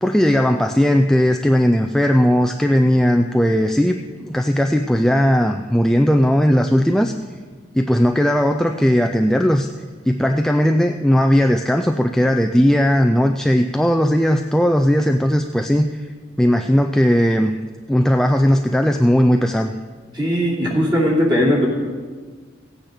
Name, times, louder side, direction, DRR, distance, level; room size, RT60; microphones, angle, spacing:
voice 1, 0.0-7.3 7.7-9.7 10.1-16.1 16.4-17.6 17.9-19.7, equal, 5° left, 5 dB, 0.3 m, -17 dB
voice 2, 20.1-21.7, equal, 25° right, -4 dB, 2.8 m, -18 dB
15.5 x 9.0 x 5.0 m, 1.5 s
head